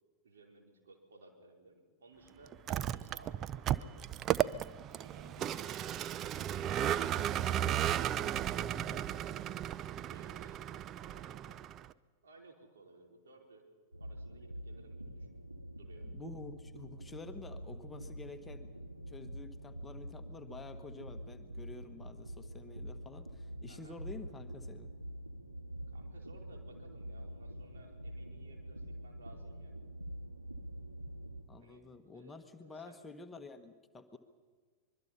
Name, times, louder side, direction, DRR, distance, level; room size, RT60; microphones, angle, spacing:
voice 1, 0.2-4.0 5.0-5.9 10.1-11.6 12.2-13.7 14.0-15.3 15.7-16.1 23.7-24.0 25.9-29.8 31.6-31.8 32.1-33.0, right 3 dB, 65° right, 1 dB, 4.6 m, -59 dB
Vehicle, 2.5-11.9, right 11 dB, 30° right, 0.6 m, -35 dB
voice 2, 5.2-5.5 8.7-9.1 16.1-18.7 19.1-24.9 31.5-34.2, left 3 dB, 15° left, 7 dB, 1.4 m, -50 dB
sound 1, 13.9-31.4, equal, 85° right, 1.8 m, -46 dB
24.5 x 23.0 x 5.8 m, 1.5 s
figure-of-eight pair, 90°, 0 cm